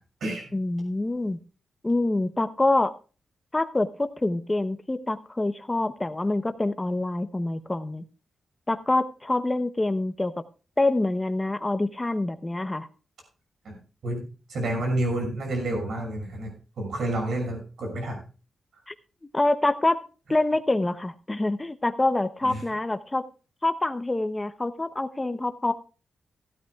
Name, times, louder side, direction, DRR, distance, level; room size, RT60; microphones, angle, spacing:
voice 1, 0.5-1.4 1.8-2.9 3.5-8.0 8.7-10.3 10.8-12.9 18.9-19.0 19.3-20.0 20.3-23.2 23.6-25.7, left 2 dB, 15° left, 10 dB, 0.8 m, -26 dB
voice 2, 14.5-18.2 22.4-22.6, right 1 dB, 80° right, 2 dB, 6.3 m, -29 dB
16.5 x 12.5 x 2.4 m, 0.34 s
wide cardioid pair, 155°, 0 cm